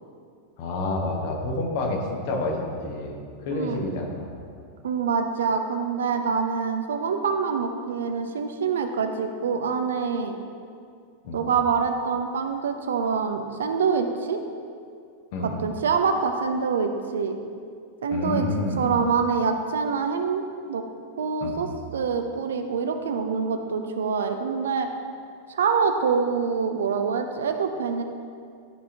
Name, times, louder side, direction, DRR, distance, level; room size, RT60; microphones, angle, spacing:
voice 1, 0.6-4.3 11.2-11.5 15.3-15.6 18.1-18.9 21.4-21.6, left 2 dB, 50° left, 1 dB, 1.1 m, -29 dB
voice 2, 3.5-3.8 4.8-10.4 11.3-14.4 15.4-17.4 18.0-18.5 18.8-20.9 21.2-24.9 25.5-28.0, right 5 dB, 65° right, 6 dB, 0.5 m, -25 dB
11.0 x 5.0 x 2.8 m, 2.3 s
figure-of-eight pair, 90°, 0 cm